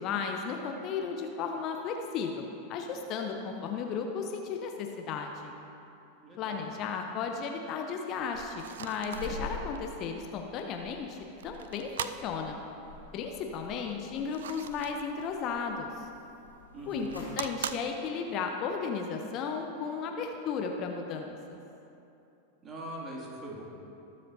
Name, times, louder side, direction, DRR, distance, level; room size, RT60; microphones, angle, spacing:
voice 1, 0.0-2.4 2.7-5.5 6.4-12.6 13.1-16.1 16.9-21.6, left 5 dB, 40° left, 3 dB, 0.8 m, -35 dB
voice 2, 6.2-6.7 16.7-17.2 22.6-23.6, right 1 dB, 25° right, -3 dB, 2.4 m, -41 dB
sound 1, 8.1-18.0, left 2 dB, 90° right, 2.0 m, -47 dB
sound 2, 8.3-9.3 9.7-9.8 10.6-10.7 11.4-12.2 14.3-15.1 17.0-17.8, right 9 dB, 65° right, 0.4 m, -39 dB
20.0 x 7.6 x 2.8 m, 2.8 s
figure-of-eight pair, 90°, 0 cm